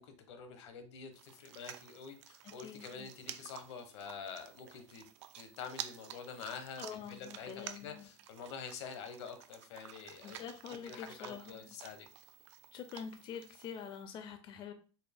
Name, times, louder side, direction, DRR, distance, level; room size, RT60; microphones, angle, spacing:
voice 1, 0.0-5.1 5.4-12.1, left 6 dB, 75° left, 8 dB, 0.9 m, -47 dB
sound 1, 1.1-14.0, right 11 dB, 75° right, 0.4 m, -51 dB
voice 2, 2.4-3.1 6.8-8.1 10.2-11.7 12.7-14.7, left 7 dB, 30° left, 8 dB, 0.4 m, -46 dB
4.3 x 2.0 x 3.4 m, 0.35 s
supercardioid pair, 115°, 15 cm